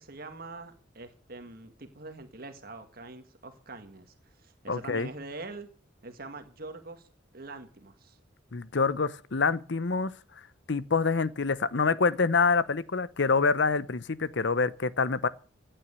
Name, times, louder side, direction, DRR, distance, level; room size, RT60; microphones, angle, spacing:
voice 1, 0.0-5.7 6.0-7.1 7.3-8.2, right 3 dB, 50° right, 1.8 m, -44 dB
voice 2, 4.7-5.1 8.5-10.1 10.7-15.3, left 4 dB, 65° left, 0.8 m, -26 dB
16.5 x 9.0 x 6.8 m
head